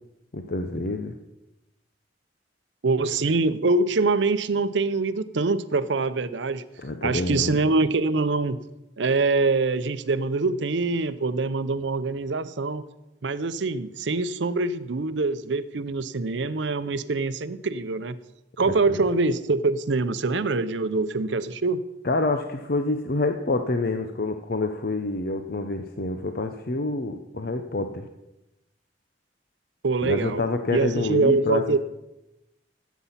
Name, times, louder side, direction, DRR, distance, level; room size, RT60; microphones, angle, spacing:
voice 1, 0.3-1.1 6.8-7.5 18.9-19.0 22.0-28.1 30.0-31.6, left 2 dB, 55° left, 7 dB, 0.7 m, -27 dB
voice 2, 2.8-6.6 7.0-8.6 9.0-12.8 13.2-18.2 18.6-21.9 29.8-30.4 30.7-31.8, right 3 dB, 75° right, 14 dB, 0.7 m, -24 dB
14.0 x 8.3 x 5.7 m, 0.94 s
head